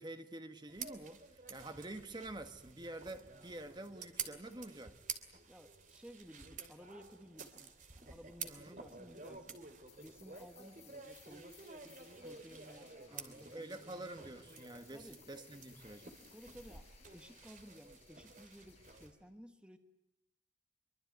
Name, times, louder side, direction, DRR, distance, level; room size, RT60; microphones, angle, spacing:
voice 1, 0.0-5.0 8.5-8.8 13.1-16.1, right 1 dB, 25° right, 1.4 m, -48 dB
sound 1, 0.7-19.1, right 6 dB, 45° right, 2.8 m, -51 dB
voice 2, 5.5-7.7 8.0-9.6 10.0-11.5 11.8-11.9 12.2-14.1 14.9-15.2 16.3-19.8, equal, 5° right, 1.3 m, -56 dB
sound 2, 9.9-19.1, left 8 dB, 35° left, 6.9 m, -64 dB
24.5 x 24.0 x 9.2 m
head